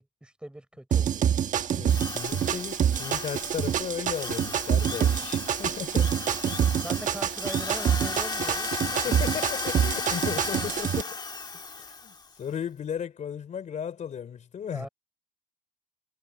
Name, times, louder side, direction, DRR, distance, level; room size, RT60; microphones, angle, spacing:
voice 1, 0.0-1.4 6.5-9.1 14.6-14.9, right 1 dB, 5° right, 5.2 m, -41 dB
sound 1, 0.9-11.0, right 9 dB, 50° right, 1.3 m, -26 dB
voice 2, 1.7-6.2 9.0-11.2 11.8-14.9, left 8 dB, 45° left, 3.3 m, -35 dB
Drill, 1.9-12.3, left 4 dB, 25° left, 1.7 m, -35 dB
cardioid pair, 110°, 17 cm